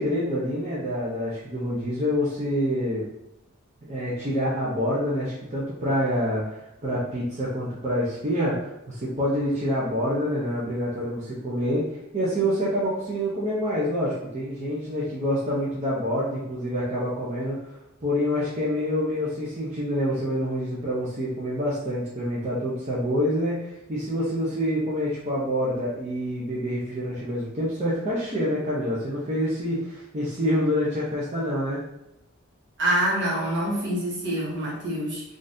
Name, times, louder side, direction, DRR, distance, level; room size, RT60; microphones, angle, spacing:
voice 1, 0.0-3.1 3.9-11.9 12.1-17.6 18.0-31.8, equal, 35° right, -7 dB, 0.6 m, -27 dB
voice 2, 32.8-35.2, right 1 dB, 60° right, -5 dB, 1.1 m, -26 dB
3.8 x 2.5 x 2.6 m, 0.86 s
head